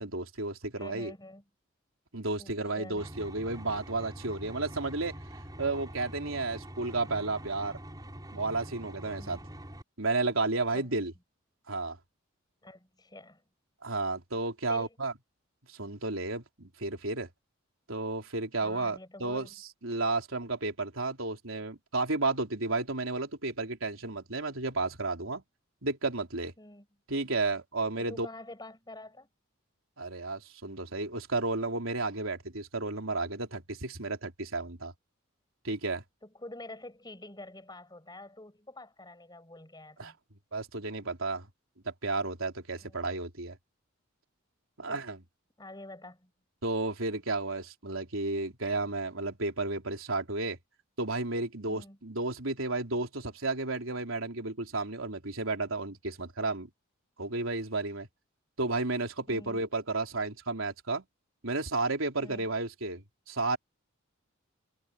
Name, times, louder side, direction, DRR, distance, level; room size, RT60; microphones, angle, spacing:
voice 1, 0.0-1.1 2.1-5.1 5.6-7.8 8.3-9.4 10.0-11.1 11.7-12.0 13.8-15.1 15.7-17.3 17.9-19.5 19.8-25.4 25.8-26.5 27.1-28.3 30.0-34.9 35.6-36.0 40.0-40.1 40.5-41.5 41.9-43.6 44.8-45.2 46.6-50.6 51.0-56.7 57.2-58.1 58.6-61.0 61.4-63.6, right 3 dB, 80° right, 3.6 m, -32 dB
voice 2, 0.8-1.4 2.4-3.1 9.1-9.5 10.7-10.9 12.6-13.4 14.7-15.0 18.6-19.5 26.6-26.9 28.0-29.3 36.2-40.2 42.8-43.0 44.9-45.0 45.6-46.3 51.7-52.0 59.3-59.6 62.2-62.5, left 2 dB, 20° left, 5.8 m, -47 dB
sound 1, 3.0-9.8, right 1 dB, 20° right, 5.3 m, -45 dB
head